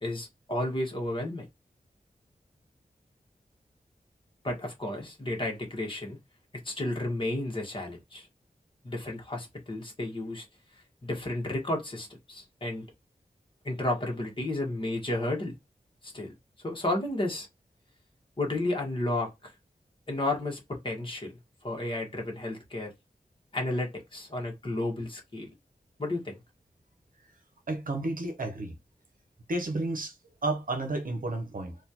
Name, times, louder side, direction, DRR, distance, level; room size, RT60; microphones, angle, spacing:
voice 1, 0.0-1.4 4.4-6.2 6.6-8.3 8.8-10.4 11.0-12.9 13.6-15.6 16.0-16.3 16.6-17.5 18.4-19.5 20.1-21.3 21.6-22.9 23.5-25.5 26.0-26.4, left 1 dB, 35° left, 1.4 m, -32 dB
voice 2, 27.7-28.7 29.5-30.1 30.4-31.8, right 2 dB, 65° right, 0.9 m, -31 dB
4.1 x 2.5 x 2.9 m
wide cardioid pair, 90°, 15 cm